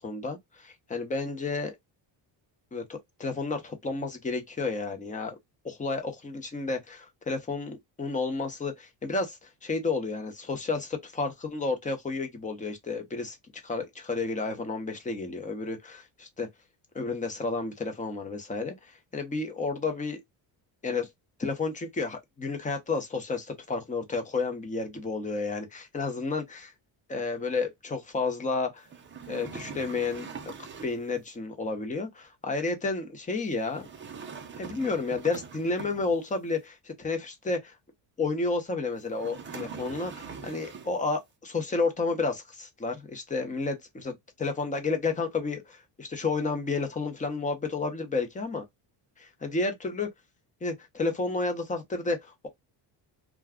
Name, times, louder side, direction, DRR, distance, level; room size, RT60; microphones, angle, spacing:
voice 1, 0.0-1.7 2.7-5.4 5.6-13.4 13.6-16.5 16.9-20.2 20.8-21.1 21.4-26.7 27.1-28.9 29.3-30.5 30.8-33.9 34.6-37.7 38.2-48.6 49.2-50.1 50.6-52.5, left 3 dB, 15° left, 0.7 m, -31 dB
sound 1, 28.9-31.1 33.7-36.4 39.1-41.1, right 5 dB, 25° right, 0.6 m, -43 dB
2.4 x 2.3 x 3.4 m
cardioid pair, 140°, 45 cm